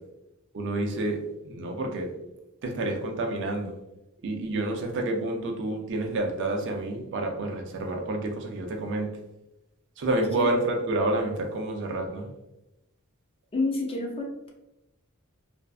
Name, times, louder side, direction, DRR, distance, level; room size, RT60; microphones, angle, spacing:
voice 1, 0.5-1.2 1.4-2.1 2.6-3.7 4.2-9.1 10.0-12.3, right 2 dB, 55° right, 2 dB, 0.4 m, -29 dB
voice 2, 10.2-10.5 13.5-14.5, left 2 dB, 25° left, -1 dB, 0.4 m, -29 dB
2.5 x 2.2 x 2.3 m, 0.92 s
head